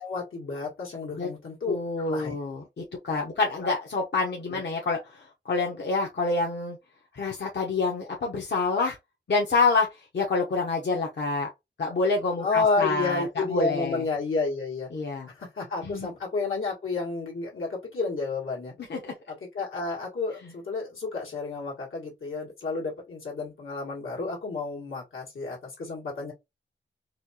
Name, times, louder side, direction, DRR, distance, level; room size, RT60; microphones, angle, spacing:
voice 1, 0.0-2.3 3.4-3.5 4.5-4.6 12.4-14.9 15.3-18.7 19.3-26.3, left 4 dB, 85° left, 1.5 m, -31 dB
voice 2, 1.7-6.8 7.1-9.0 9.3-11.5 11.8-14.0 14.9-15.3 15.8-16.1 18.9-19.1, left 3 dB, 60° left, 0.8 m, -27 dB
4.2 x 2.3 x 2.7 m
cardioid pair, 60°, 20 cm